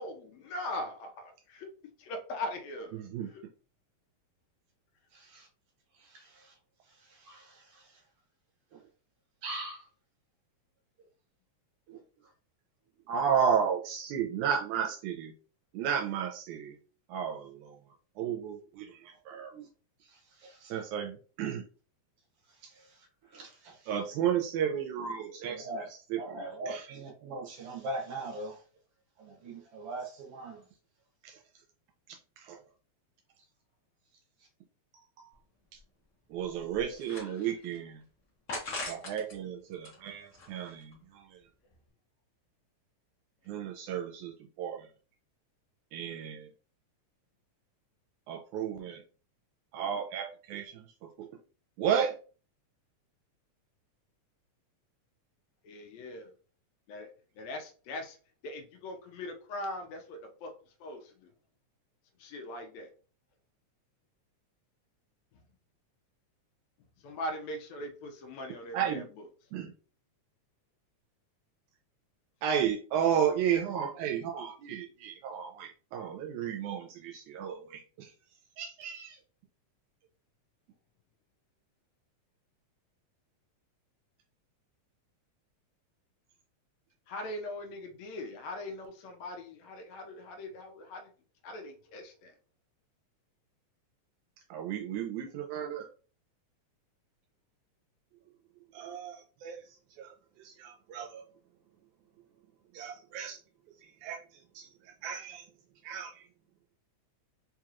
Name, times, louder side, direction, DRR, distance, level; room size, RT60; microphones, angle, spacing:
voice 1, 0.0-1.7 2.0-3.4 37.1-37.6 55.6-56.3 56.9-57.1 57.4-58.2 58.4-60.5 60.8-61.3 62.2-62.9 67.0-69.3 87.1-91.1 91.4-92.3, left 1 dB, 75° left, 1.8 m, -41 dB
voice 2, 9.4-9.8 11.9-12.0 19.5-19.6 20.4-20.5 23.3-23.7 25.2-25.9 26.2-28.6 29.2-30.6, right 2 dB, 65° right, 1.6 m, -40 dB
voice 3, 13.1-15.3 15.7-16.8 17.1-17.6 18.2-19.0 19.3-19.5 20.6-21.6 23.9-26.9 31.2-31.3 32.5-32.6 35.2-35.3 36.3-38.0 38.9-41.2 43.5-44.3 44.6-44.8 45.9-46.5 48.3-49.0 49.7-50.9 51.2-51.3 51.8-52.1 68.7-69.0 69.5-69.7 72.4-78.1 78.6-79.2 94.5-95.9 98.7-99.6 100.0-100.1 100.4-101.2 102.7-103.4 104.0-104.2 104.6-104.7 105.0-105.4 105.8-106.1, right 8 dB, 80° right, 1.9 m, -33 dB
sound 1, 35.3-35.4 35.8-35.9 36.4-37.8 38.5-39.4 39.7-40.9, left 2 dB, 60° left, 0.8 m, -41 dB
4.7 x 2.9 x 2.4 m
omnidirectional pair, 3.4 m